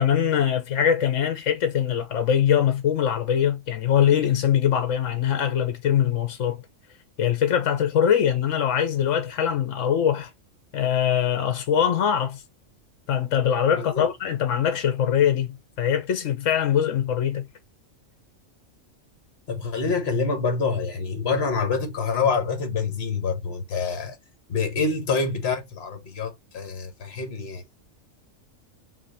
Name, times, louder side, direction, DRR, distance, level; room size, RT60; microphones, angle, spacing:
voice 1, 0.0-6.6 7.2-10.3 10.7-12.4 13.1-17.5, left 9 dB, 70° left, 1.1 m, -22 dB
voice 2, 13.7-14.1 19.5-24.2 24.5-27.6, left 4 dB, 55° left, 1.6 m, -26 dB
4.4 x 2.7 x 4.2 m
omnidirectional pair, 1.3 m